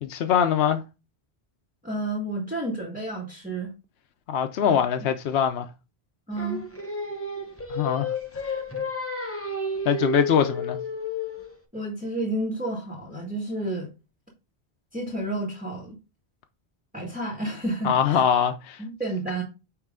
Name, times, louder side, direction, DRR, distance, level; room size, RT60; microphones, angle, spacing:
voice 1, 0.0-0.8 4.3-5.7 7.7-8.2 8.4-8.6 9.9-10.8 17.8-18.8, left 8 dB, 80° left, 0.9 m, -23 dB
voice 2, 1.8-3.7 4.6-4.8 6.3-6.6 11.7-13.9 14.9-16.0 16.9-18.2 18.8-19.4, right 2 dB, 10° right, 1.8 m, -30 dB
Singing, 6.4-11.6, left 2 dB, 15° left, 0.9 m, -32 dB
9.4 x 3.2 x 3.7 m
omnidirectional pair, 1.0 m